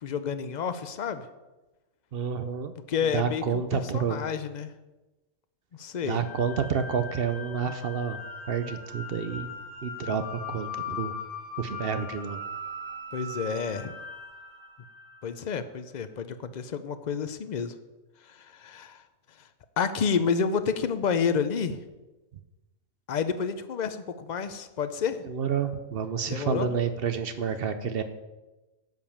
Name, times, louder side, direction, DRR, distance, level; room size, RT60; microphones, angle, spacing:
voice 1, 0.0-1.3 2.9-4.7 5.8-6.2 13.1-13.9 15.2-17.7 18.2-19.0 19.8-21.8 23.1-25.2 26.3-26.7, left 6 dB, 65° left, 10 dB, 0.4 m, -29 dB
voice 2, 2.1-2.7 3.1-4.2 6.0-8.2 8.5-9.5 9.8-11.1 11.6-12.4 25.3-28.0, right 6 dB, 55° right, 10 dB, 0.7 m, -29 dB
sound 1, 6.2-15.3, left 3 dB, 35° right, 2.6 m, -40 dB
10.5 x 5.1 x 7.1 m, 1.1 s
omnidirectional pair, 1.5 m